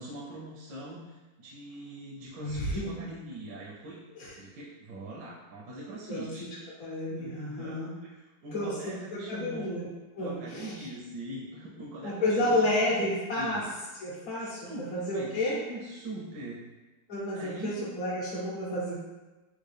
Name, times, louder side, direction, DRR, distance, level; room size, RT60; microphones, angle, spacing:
voice 1, 0.0-4.0 4.4-6.5 7.2-9.7 10.2-13.1 13.4-13.6 14.4-16.6 17.4-17.8, right 1 dB, 80° right, -5 dB, 1.3 m, -42 dB
voice 2, 2.4-2.9 4.2-4.3 6.1-6.2 6.8-7.9 8.5-9.9 10.1-10.9 12.0-13.6 14.0-15.5 17.1-18.9, left 1 dB, 55° left, -8 dB, 0.9 m, -31 dB
3.7 x 2.3 x 3.2 m, 1.1 s
omnidirectional pair, 2.0 m